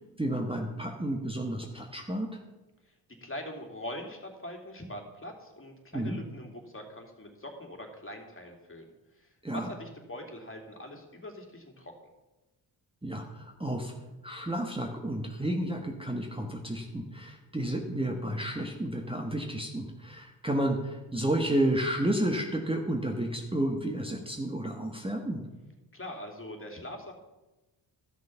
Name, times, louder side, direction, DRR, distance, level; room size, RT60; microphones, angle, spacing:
voice 1, 0.2-2.4 5.9-6.2 9.4-9.7 13.0-13.9 14.2-25.4, right 1 dB, 10° right, 2 dB, 1.5 m, -31 dB
voice 2, 3.2-8.9 9.2-11.9 25.9-27.1, left 1 dB, 25° left, 2 dB, 3.0 m, -42 dB
13.5 x 6.3 x 5.8 m, 1.1 s
supercardioid pair, 50°, 47 cm